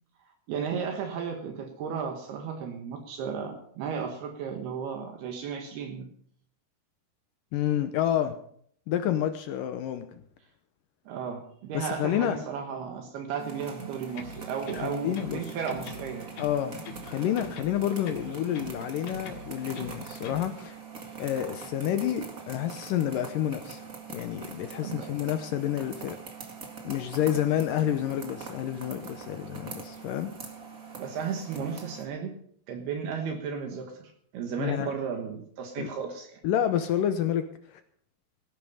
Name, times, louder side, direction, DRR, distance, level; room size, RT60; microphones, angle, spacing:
voice 1, 0.5-6.1 11.1-16.3 24.8-25.1 31.0-32.3 32.7-36.4, right 6 dB, 75° right, 4 dB, 3.4 m, -34 dB
voice 2, 7.5-8.4 8.9-10.2 11.7-12.4 14.7-15.5 16.4-20.8 21.2-23.8 24.1-26.2 26.8-30.3 34.6-34.9 35.8-35.9 36.4-37.8, left 11 dB, 75° left, 9 dB, 2.1 m, -29 dB
sound 1, 13.4-32.1, right 5 dB, 35° right, 1.4 m, -43 dB
sound 2, 14.1-15.4 15.7-17.1 17.4-18.8 19.1-20.5, left 3 dB, 55° left, 2.6 m, -42 dB
17.5 x 10.5 x 5.5 m, 0.63 s
omnidirectional pair, 4.7 m